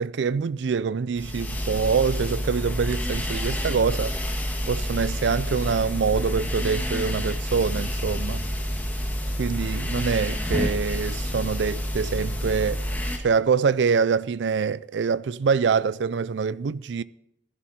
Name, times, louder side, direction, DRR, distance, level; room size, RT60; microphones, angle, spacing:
voice 1, 0.0-4.2 4.7-8.4 9.4-12.8 13.2-17.0, right 5 dB, 80° right, 0.4 m, -25 dB
sound 1, 1.2-13.2, equal, 10° left, 1.6 m, -28 dB
15.0 x 11.5 x 4.2 m
head